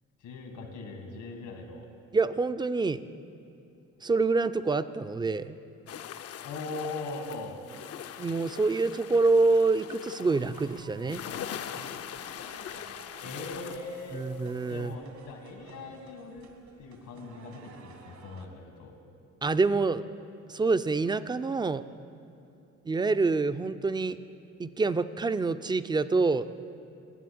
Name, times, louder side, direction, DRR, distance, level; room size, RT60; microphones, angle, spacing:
voice 1, 0.2-1.9 6.4-7.6 13.2-14.2 14.7-16.5 16.8-18.9, left 3 dB, 80° left, 4 dB, 1.9 m, -40 dB
voice 2, 2.1-3.0 4.0-5.6 8.2-11.2 14.1-14.9 19.4-20.0 20.5-21.8 22.9-24.2 24.6-26.5, right 3 dB, 15° right, 12 dB, 0.3 m, -26 dB
sound 1, 5.9-14.9, left 9 dB, 55° left, 0.5 m, -42 dB
sound 2, 10.2-18.5, right 5 dB, 70° right, 1.4 m, -52 dB
11.0 x 7.5 x 8.6 m, 2.7 s
cardioid pair, 90°, 30 cm